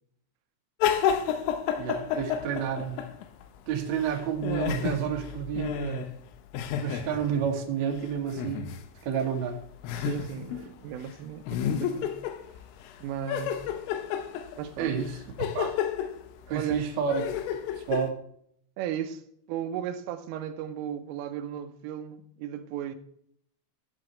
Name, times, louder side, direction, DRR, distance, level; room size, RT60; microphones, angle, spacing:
sound 1, 0.8-3.4 3.7-7.5 8.3-8.8 9.2-9.3 9.8-10.7 11.0-11.1 11.5-12.9 13.3-18.1, left 9 dB, 90° left, 3.6 m, -31 dB
voice 1, 1.8-3.0 3.7-6.1 6.8-8.7 9.0-9.6 14.8-15.8 16.5-17.3 17.9-18.2, right 7 dB, 60° right, 1.8 m, -30 dB
voice 2, 10.0-12.2 13.0-13.6 14.6-15.0 16.5-16.9 18.8-23.0, right 9 dB, 85° right, 3.4 m, -36 dB
14.5 x 7.9 x 3.2 m
omnidirectional pair, 5.6 m